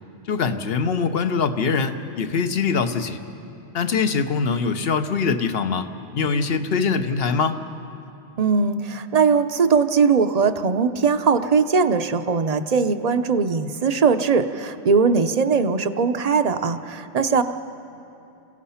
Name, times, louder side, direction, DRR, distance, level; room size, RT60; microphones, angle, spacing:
voice 1, 0.3-3.2 3.7-7.6, left 5 dB, 65° left, 9 dB, 1.1 m, -23 dB
voice 2, 8.4-17.4, right 5 dB, 40° right, 9 dB, 0.7 m, -20 dB
29.0 x 16.5 x 5.7 m, 2.8 s
omnidirectional pair, 1.1 m